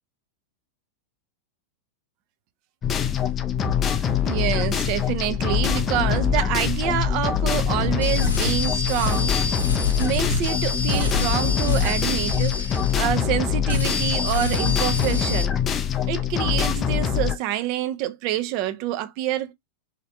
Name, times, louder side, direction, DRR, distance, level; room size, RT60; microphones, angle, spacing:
sound 1, 2.8-17.3, left 9 dB, 25° left, 0.4 m, -24 dB
voice 1, 4.0-9.5 10.0-15.6 16.1-19.5, right 12 dB, 45° right, 0.4 m, -27 dB
sound 2, 5.1-13.5, left 2 dB, 15° right, 1.0 m, -33 dB
sound 3, 8.0-13.4 13.7-15.4, left 3 dB, 75° left, 0.8 m, -28 dB
3.1 x 2.8 x 2.5 m
figure-of-eight pair, 90°, 0 cm